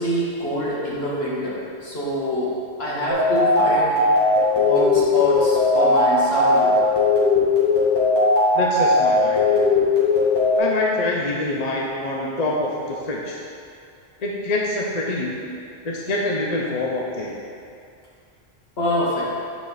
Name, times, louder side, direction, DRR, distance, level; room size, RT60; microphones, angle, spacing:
voice 1, 0.0-2.5 2.8-4.0 4.5-6.8 18.8-19.3, equal, 65° left, -7 dB, 1.9 m, -25 dB
sound 1, 3.1-10.6, left 3 dB, 20° left, 2.0 m, -18 dB
voice 2, 8.5-9.7 10.6-13.4 14.2-15.4 15.8-17.4, left 2 dB, 40° left, -2 dB, 0.8 m, -26 dB
8.6 x 5.1 x 4.0 m, 2.4 s
omnidirectional pair, 1.1 m